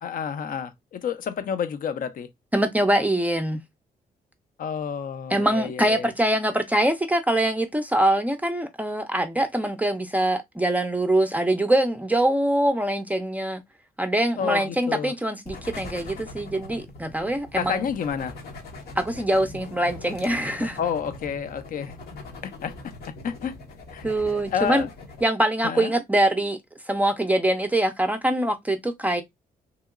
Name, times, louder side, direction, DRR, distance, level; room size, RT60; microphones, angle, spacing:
voice 1, 0.0-2.3 4.6-6.1 14.4-15.1 17.6-18.3 20.8-22.0 22.4-22.7 23.2-23.5 23.9-24.9 25.6-25.9, left 7 dB, 60° left, 0.5 m, -30 dB
voice 2, 2.5-3.6 5.3-13.6 14.0-17.8 19.0-20.8 24.0-24.8 25.2-26.6 26.9-29.2, right 1 dB, 10° right, 0.4 m, -23 dB
sound 1, 15.4-25.2, left 2 dB, 80° left, 0.9 m, -41 dB
2.9 x 2.8 x 2.4 m
cardioid pair, 95°, 16 cm